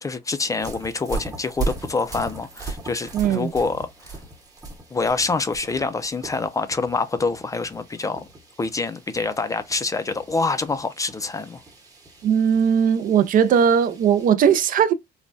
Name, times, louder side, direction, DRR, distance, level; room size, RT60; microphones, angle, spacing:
voice 1, 0.0-4.2 4.9-8.3 8.6-11.6, left 3 dB, 20° left, 0.4 m, -26 dB
sound 1, 0.6-14.3, right 3 dB, 20° right, 1.0 m, -38 dB
voice 2, 3.1-3.5 12.2-14.9, right 8 dB, 55° right, 0.5 m, -18 dB
3.2 x 2.2 x 2.5 m
cardioid pair, 110°, 17 cm